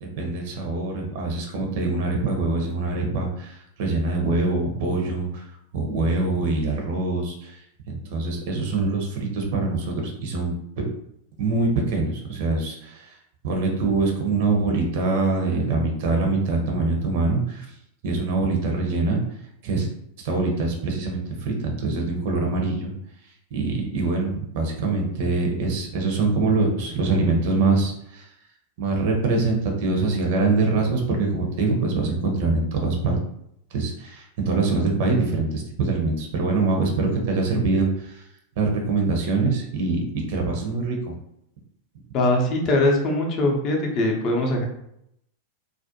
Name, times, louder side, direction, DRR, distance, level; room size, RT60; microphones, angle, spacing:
voice 1, 0.0-5.4 5.7-7.6 7.9-10.9 11.4-13.2 13.4-17.7 18.0-19.2 19.6-19.9 20.2-22.9 23.5-28.3 28.8-33.2 33.7-38.2 38.6-41.1, right 3 dB, 50° right, 2 dB, 0.6 m, -24 dB
voice 2, 42.1-44.7, left 1 dB, 35° left, 1 dB, 0.5 m, -21 dB
2.4 x 2.1 x 2.7 m, 0.75 s
figure-of-eight pair, 90°, 0 cm